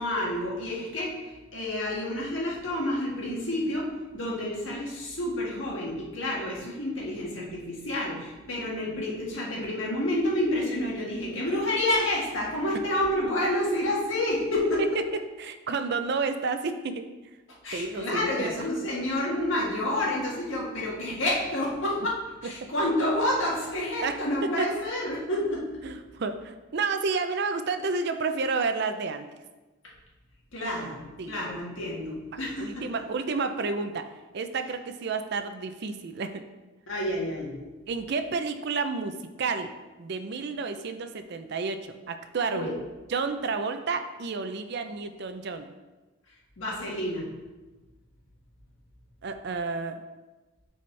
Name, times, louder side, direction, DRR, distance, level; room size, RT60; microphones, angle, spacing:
voice 1, 0.0-3.9 4.1-14.8 17.6-22.2 22.4-25.6 30.5-32.9 36.9-37.5 42.5-42.7 46.6-47.3, left 1 dB, 70° left, -3 dB, 1.7 m, -29 dB
voice 2, 15.4-17.1 17.7-18.7 22.6-22.7 24.0-24.7 25.8-29.3 31.2-31.4 32.3-34.0 34.3-36.4 37.9-39.7 40.0-42.8 43.1-45.7 49.2-50.0, right 4 dB, 55° right, 8 dB, 0.5 m, -31 dB
8.8 x 4.2 x 3.2 m, 1.2 s
head